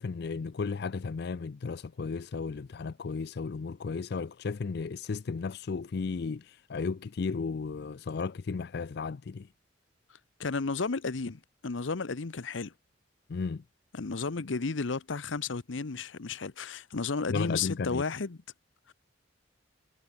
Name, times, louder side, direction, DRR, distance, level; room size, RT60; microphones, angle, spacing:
voice 1, 0.0-9.5 13.3-13.6 17.3-18.0, left 4 dB, 55° left, 0.4 m, -34 dB
voice 2, 10.4-12.7 13.9-18.4 18.9-19.0, left 4 dB, 80° left, 0.8 m, -33 dB
head